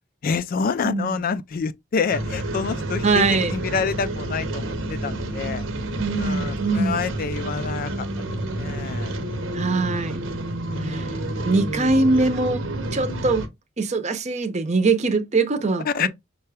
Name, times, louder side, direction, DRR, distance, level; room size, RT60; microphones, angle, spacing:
voice 1, 0.2-3.3 3.5-5.6 6.2-9.1 9.5-9.9 10.7-11.4 15.9-16.1, left 5 dB, 45° left, 0.3 m, -28 dB
voice 2, 0.8-1.2 3.0-3.5 6.0-7.0 9.5-10.2 10.8-11.1 11.4-12.6 12.9-13.5 13.8-16.1, right 3 dB, 35° right, 0.6 m, -22 dB
sound 1, 2.1-13.5, right 1 dB, 75° right, 0.8 m, -29 dB
5.5 x 2.3 x 3.3 m
head